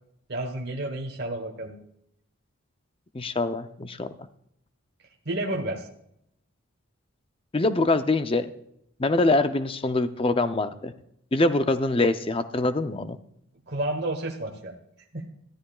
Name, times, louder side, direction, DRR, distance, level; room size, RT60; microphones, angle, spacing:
voice 1, 0.3-1.8 5.2-5.9 13.7-14.8 15.1-15.3, right 1 dB, 50° right, 2 dB, 1.1 m, -31 dB
voice 2, 3.1-4.1 7.5-8.5 9.0-10.9 11.3-13.2, left 2 dB, 25° left, 10 dB, 0.5 m, -24 dB
14.0 x 13.0 x 2.3 m, 0.75 s
head